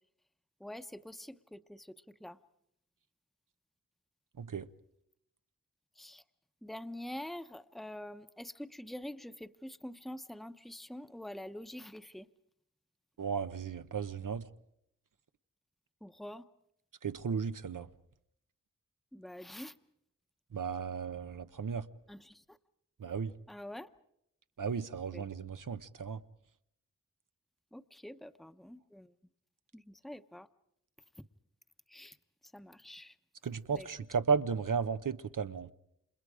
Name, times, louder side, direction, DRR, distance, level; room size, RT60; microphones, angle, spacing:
voice 1, 0.6-2.4 6.0-6.2 6.6-12.3 16.0-16.4 19.1-19.7 22.1-22.6 23.5-23.9 25.1-25.2 27.7-29.1 29.7-30.5 31.9-32.2 32.5-33.2 33.7-33.9, left 1 dB, ahead, 0.9 m, -46 dB
voice 2, 13.2-14.5 17.0-17.9 20.5-21.9 23.0-23.3 24.6-26.2 33.4-35.7, right 6 dB, 85° right, 0.9 m, -34 dB
30.0 x 27.0 x 5.0 m
wide cardioid pair, 65°, 31 cm